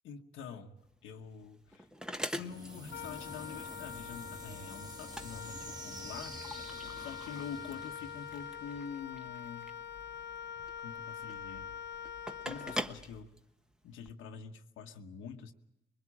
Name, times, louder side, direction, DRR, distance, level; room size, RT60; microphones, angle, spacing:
voice 1, 0.0-1.9 2.4-6.4 7.0-9.7 10.8-11.7 12.4-13.3 13.8-15.5, left 6 dB, 85° left, 1.3 m, -46 dB
sound 1, 0.8-14.1, equal, 5° right, 1.2 m, -45 dB
sound 2, 2.3-9.2, right 1 dB, 20° right, 2.7 m, -48 dB
Wind instrument woodwind instrument, 2.9-13.3, left 8 dB, 65° left, 0.9 m, -45 dB
22.5 x 21.0 x 8.5 m
cardioid pair, 90°, 20 cm